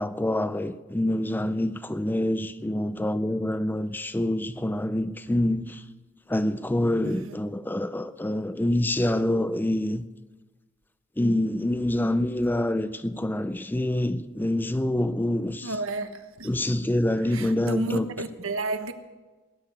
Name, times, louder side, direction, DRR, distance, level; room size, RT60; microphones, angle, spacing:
voice 1, 0.0-5.8 6.3-10.0 11.2-15.7 16.4-18.1, left 1 dB, 10° left, 0.4 m, -26 dB
voice 2, 7.0-7.3 15.6-16.6 17.2-18.9, right 2 dB, 70° right, 1.2 m, -32 dB
19.0 x 7.0 x 9.7 m
head